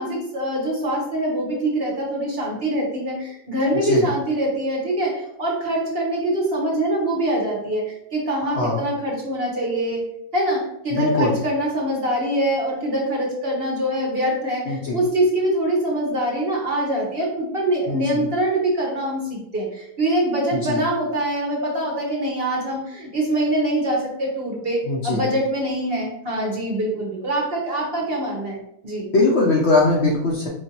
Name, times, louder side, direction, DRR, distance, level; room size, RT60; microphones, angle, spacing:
voice 1, 0.0-29.1, right 1 dB, 45° right, -2 dB, 1.0 m, -24 dB
voice 2, 8.4-8.8 10.9-11.4 14.7-15.0 17.9-18.3 20.5-20.8 24.9-25.2 29.1-30.5, left 2 dB, 60° left, -2 dB, 0.7 m, -21 dB
5.1 x 2.6 x 2.8 m, 0.76 s
omnidirectional pair, 1.6 m